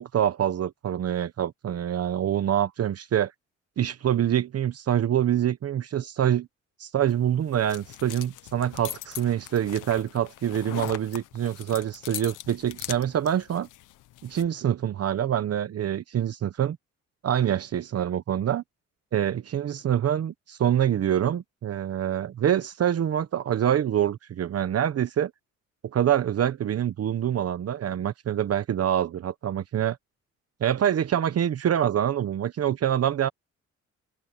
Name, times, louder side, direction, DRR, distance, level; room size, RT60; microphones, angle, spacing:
voice 1, 0.0-3.3 3.8-6.5 6.8-13.7 14.2-16.8 17.2-18.6 19.1-25.3 25.9-30.0 30.6-33.3, right 10 dB, 55° right, 1.0 m, -25 dB
sound 1, 7.0-14.5, left 16 dB, 85° left, 0.9 m, -41 dB
cardioid pair, 90°, 30 cm